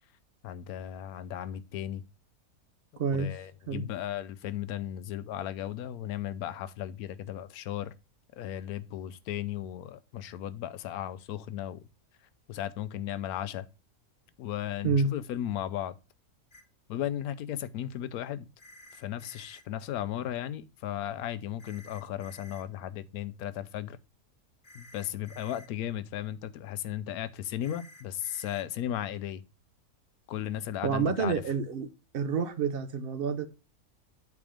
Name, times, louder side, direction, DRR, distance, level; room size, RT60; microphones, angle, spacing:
voice 1, 0.4-2.0 3.1-7.9 8.3-11.8 12.5-13.6 14.4-15.9 16.9-18.4 18.9-24.0 24.7-29.4 30.3-31.3, left 11 dB, 90° left, 1.1 m, -35 dB
voice 2, 3.0-3.3 3.7-3.9 14.8-15.1 30.8-31.9 32.1-33.5, right 5 dB, 50° right, 0.8 m, -28 dB
sound 1, 16.5-16.6 18.6-19.6 21.6-22.6 24.6-25.7 27.6-28.6, left 1 dB, 35° left, 1.5 m, -52 dB
8.3 x 3.5 x 4.9 m
omnidirectional pair, 1.5 m